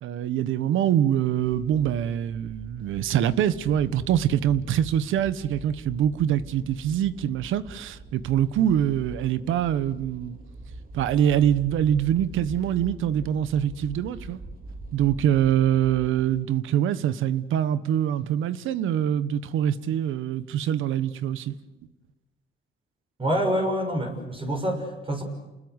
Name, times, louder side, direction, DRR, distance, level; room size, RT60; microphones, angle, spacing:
voice 1, 0.0-10.4 10.9-14.4 14.9-21.5, right 10 dB, 85° right, 1.3 m, -24 dB
sound 1, 1.4-16.4, right 2 dB, 50° right, 4.3 m, -43 dB
voice 2, 23.2-25.2, equal, 25° right, 6.4 m, -26 dB
29.5 x 21.0 x 8.2 m
cardioid pair, 90°, 20 cm